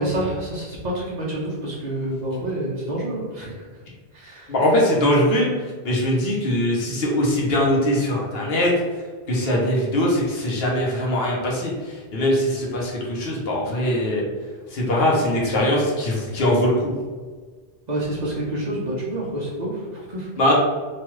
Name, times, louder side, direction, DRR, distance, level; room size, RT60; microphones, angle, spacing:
voice 1, 0.0-3.6 4.1-4.5 17.9-20.3, right 1 dB, 45° right, -5 dB, 0.7 m, -28 dB
voice 2, 4.5-8.7 9.3-14.2 14.7-16.9 20.4-20.5, left 1 dB, 65° left, -3 dB, 1.0 m, -21 dB
3.1 x 2.3 x 3.0 m, 1.5 s
omnidirectional pair, 1.1 m